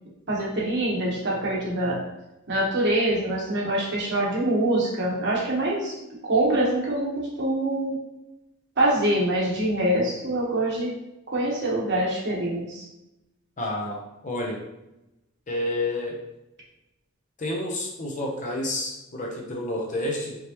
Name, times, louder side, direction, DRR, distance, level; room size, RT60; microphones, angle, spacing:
voice 1, 0.3-2.0 2.5-5.9 6.2-8.0 8.8-10.9 11.3-12.9, right 1 dB, 55° right, -3 dB, 1.2 m, -24 dB
voice 2, 13.6-14.0 14.2-14.6 15.5-16.2 17.4-20.4, left 1 dB, 40° left, -1 dB, 0.8 m, -29 dB
4.9 x 3.3 x 3.0 m, 0.92 s
head